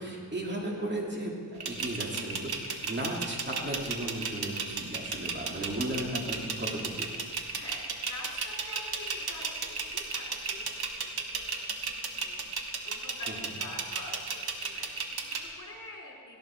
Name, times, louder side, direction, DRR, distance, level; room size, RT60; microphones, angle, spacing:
voice 1, 0.0-2.3 2.8-6.8, right 1 dB, 30° right, -1 dB, 2.5 m, -35 dB
sound 1, 1.6-15.4, right 5 dB, 80° right, 1.5 m, -34 dB
voice 2, 7.5-16.4, left 2 dB, 55° left, -3 dB, 5.0 m, -47 dB
18.0 x 16.0 x 4.5 m, 2.1 s
wide cardioid pair, 95°, 38 cm